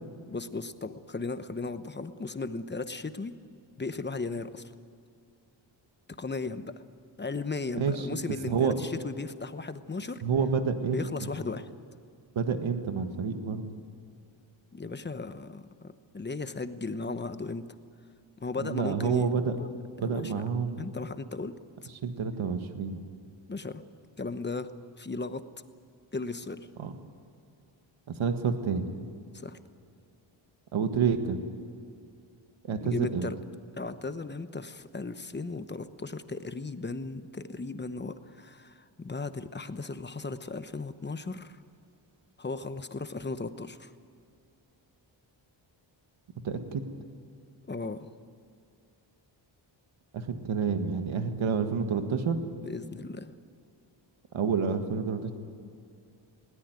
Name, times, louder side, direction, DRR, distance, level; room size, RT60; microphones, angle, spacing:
voice 1, 0.3-3.3 3.8-4.6 6.2-6.7 7.2-10.2 10.9-11.7 14.7-17.7 18.4-19.7 20.0-20.4 20.8-21.6 23.5-23.8 24.2-25.5 26.1-26.7 29.3-29.6 32.7-33.4 33.7-41.6 42.4-43.9 47.7-48.1 52.6-53.3, left 3 dB, 20° left, 11 dB, 1.0 m, -36 dB
voice 2, 7.7-8.2 8.5-8.7 10.2-11.0 12.3-13.6 18.6-19.5 20.0-20.9 22.0-23.0 26.8-26.9 28.1-29.0 30.7-31.4 32.6-33.3 46.4-46.8 50.1-52.4 54.3-55.3, right 6 dB, 75° right, 7 dB, 1.9 m, -28 dB
20.5 x 18.0 x 9.6 m, 2.4 s
wide cardioid pair, 115°, 48 cm